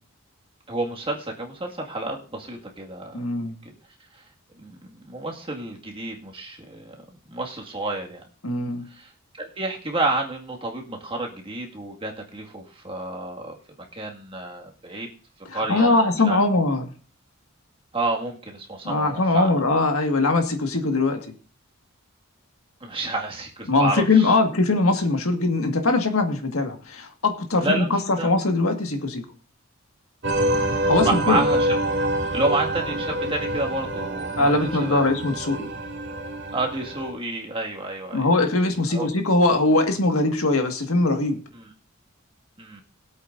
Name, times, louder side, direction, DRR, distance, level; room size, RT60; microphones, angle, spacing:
voice 1, 0.7-3.2 3.5-3.8 4.1-4.2 4.6-8.3 9.0-9.1 9.4-13.6 13.9-15.1 15.5-16.4 17.9-19.5 22.8-24.3 27.6-28.3 30.5-31.7 32.2-35.0 36.5-38.3 38.9-39.1 41.5-41.7 42.6-42.8, right 2 dB, 25° right, 0 dB, 2.0 m, -30 dB
voice 2, 3.1-3.5 8.4-8.9 15.5-16.9 18.8-21.2 23.7-29.3 30.9-31.4 34.4-35.7 38.1-41.4, left 2 dB, 85° left, 5 dB, 1.8 m, -21 dB
sound 1, 30.2-37.1, right 1 dB, 55° right, 2.3 m, -26 dB
22.0 x 8.2 x 2.6 m, 0.39 s
head